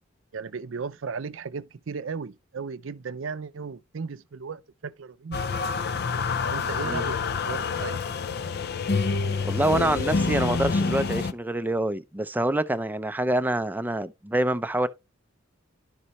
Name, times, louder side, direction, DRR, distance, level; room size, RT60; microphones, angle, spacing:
voice 1, 0.3-5.7 6.5-8.0, right 5 dB, 70° right, 0.5 m, -36 dB
sound 1, 5.3-11.3, left 4 dB, 50° left, 0.5 m, -27 dB
voice 2, 9.4-14.9, right 1 dB, 10° right, 0.5 m, -26 dB
11.0 x 5.4 x 3.0 m
head